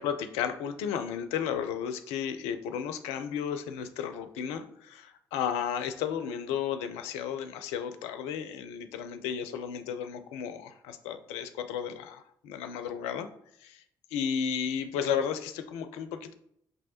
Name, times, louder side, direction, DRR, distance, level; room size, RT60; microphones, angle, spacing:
voice 1, 0.0-13.3 13.6-13.8 14.1-16.3, left 8 dB, 70° left, 9 dB, 0.4 m, -33 dB
5.3 x 3.1 x 2.8 m, 0.72 s
figure-of-eight pair, 40°, 11 cm